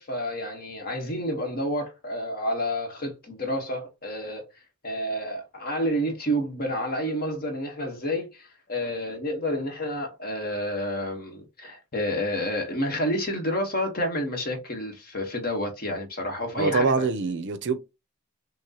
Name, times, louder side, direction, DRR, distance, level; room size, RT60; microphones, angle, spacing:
voice 1, 0.0-4.5 4.8-17.1, equal, 40° left, 1.3 m, -29 dB
voice 2, 16.6-17.8, right 4 dB, 55° right, 0.6 m, -24 dB
6.1 x 2.1 x 2.9 m
head